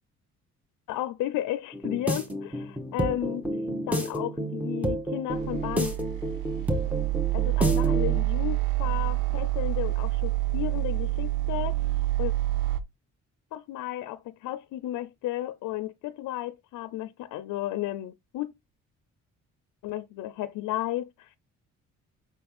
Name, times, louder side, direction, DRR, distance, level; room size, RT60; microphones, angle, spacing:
voice 1, 0.9-3.5 3.9-5.9 7.3-11.8 12.2-12.3 13.5-18.5 19.8-21.3, left 14 dB, 85° left, 0.6 m, -33 dB
sound 1, 1.7-8.3, right 1 dB, 5° right, 1.8 m, -30 dB
sound 2, 5.3-12.8, right 18 dB, 90° right, 0.7 m, -27 dB
5.9 x 4.3 x 4.1 m
cardioid pair, 90°, 30 cm